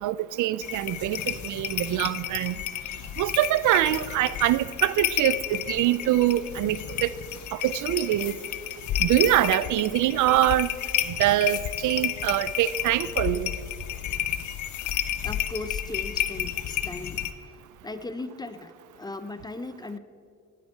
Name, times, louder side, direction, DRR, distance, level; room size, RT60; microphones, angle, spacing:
voice 1, 0.0-2.5 3.2-7.1 7.5-8.3 9.0-10.7 11.1-13.5, right 14 dB, 80° right, 17 dB, 0.5 m, -24 dB
sound 1, 0.6-17.3, left 11 dB, 70° left, 0.7 m, -31 dB
voice 2, 15.2-17.2 17.8-20.0, left 2 dB, 15° left, 11 dB, 0.6 m, -37 dB
17.0 x 8.5 x 4.5 m, 2.2 s
cardioid pair, 90°, 30 cm